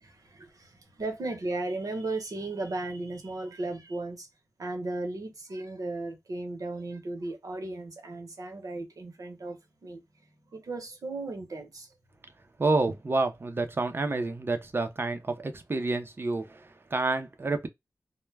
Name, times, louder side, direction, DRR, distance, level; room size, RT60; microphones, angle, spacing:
voice 1, 0.0-4.3 4.6-10.0 10.5-11.9, right 2 dB, 75° right, 0.9 m, -36 dB
voice 2, 12.6-17.7, right 3 dB, 40° right, 0.5 m, -29 dB
2.2 x 2.1 x 3.1 m
wide cardioid pair, 100°, 6 cm